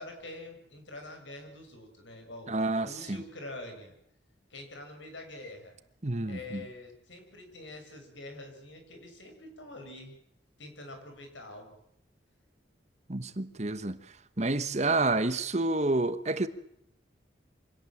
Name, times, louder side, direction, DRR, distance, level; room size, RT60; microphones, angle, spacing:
voice 1, 0.0-2.6 2.8-3.9 4.5-5.8 6.2-10.1 10.6-11.8, left 2 dB, 90° left, 6.7 m, -45 dB
voice 2, 2.5-3.2 6.0-6.6 13.1-14.0 14.4-16.5, right 2 dB, 35° right, 1.2 m, -29 dB
25.0 x 18.0 x 7.5 m
head